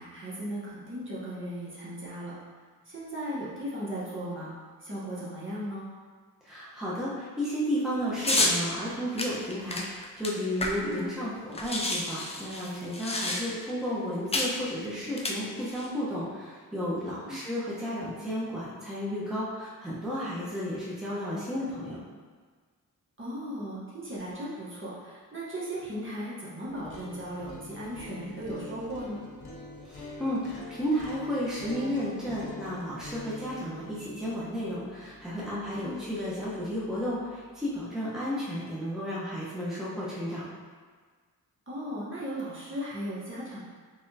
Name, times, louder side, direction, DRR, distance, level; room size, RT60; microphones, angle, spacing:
voice 1, 0.0-2.3 2.8-4.5 4.8-5.9 10.8-11.0 17.2-17.4 23.2-29.2 35.8-36.0 41.7-43.6, equal, 35° right, -8 dB, 1.1 m, -37 dB
voice 2, 6.4-22.0 29.8-40.4, equal, ahead, -8 dB, 0.9 m, -33 dB
sound 1, 8.2-8.6 9.2-11.0 11.3-11.4 11.5-13.7 14.3-14.6 15.1-15.9, left 2 dB, 15° left, 0.4 m, -29 dB
sound 2, 26.7-36.7, left 2 dB, 85° left, 0.7 m, -45 dB
3.5 x 3.3 x 2.8 m, 1.5 s
cardioid pair, 60°, 37 cm